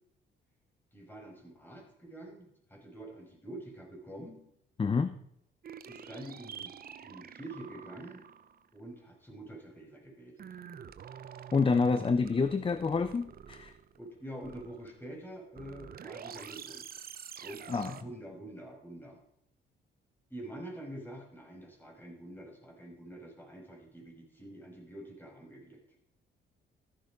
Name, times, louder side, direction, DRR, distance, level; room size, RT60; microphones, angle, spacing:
voice 1, 0.9-4.4 5.9-8.2 8.7-10.5 14.0-16.8 17.4-19.2 20.3-25.8, right 1 dB, 10° left, 0 dB, 5.8 m, -46 dB
voice 2, 4.8-5.2 11.5-13.7 17.7-18.0, left 4 dB, 25° left, 12 dB, 0.7 m, -28 dB
sound 1, 5.6-8.7 10.4-14.1 14.4-15.1 15.5-18.0, right 8 dB, 50° right, 0.9 m, -47 dB
14.0 x 11.0 x 5.2 m, 0.72 s
cardioid pair, 90°, 20 cm